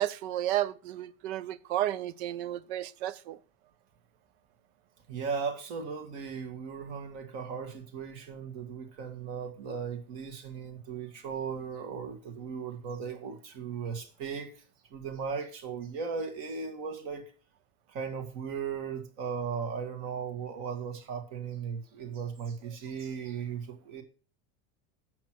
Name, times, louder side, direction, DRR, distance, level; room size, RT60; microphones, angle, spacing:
voice 1, 0.0-3.4, right 13 dB, 60° right, 0.7 m, -32 dB
voice 2, 5.1-14.6 14.9-17.3 17.9-24.0, right 6 dB, 45° right, 1.9 m, -37 dB
8.6 x 6.2 x 6.1 m
cardioid pair, 180°, 36 cm